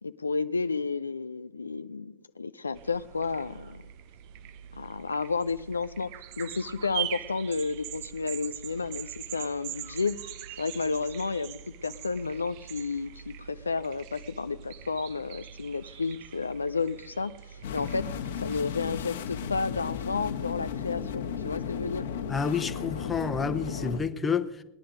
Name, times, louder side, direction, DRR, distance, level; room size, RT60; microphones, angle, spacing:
voice 1, 0.0-3.8 4.7-10.2 10.6-18.1 18.4-22.1, left 4 dB, 75° left, 0.4 m, -32 dB
sound 1, 2.7-18.6, right 12 dB, 45° right, 0.8 m, -42 dB
sound 2, 17.6-24.0, left 7 dB, 60° left, 1.4 m, -34 dB
voice 2, 22.3-24.6, left 5 dB, 15° left, 1.0 m, -29 dB
20.0 x 10.5 x 5.1 m
figure-of-eight pair, 90°, 0 cm